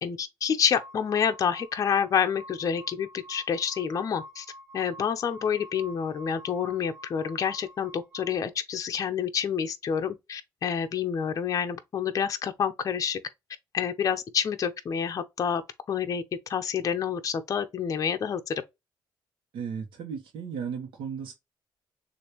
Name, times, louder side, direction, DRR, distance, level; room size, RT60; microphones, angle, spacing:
voice 1, 0.0-4.5 4.7-13.2 13.7-15.6 15.9-16.2 16.5-18.6, left 7 dB, 40° left, 0.7 m, -28 dB
sound 1, 0.7-8.4, equal, 10° left, 2.2 m, -48 dB
voice 2, 19.5-21.3, right 6 dB, 80° right, 1.1 m, -35 dB
6.7 x 2.6 x 3.0 m
cardioid pair, 140°, 9 cm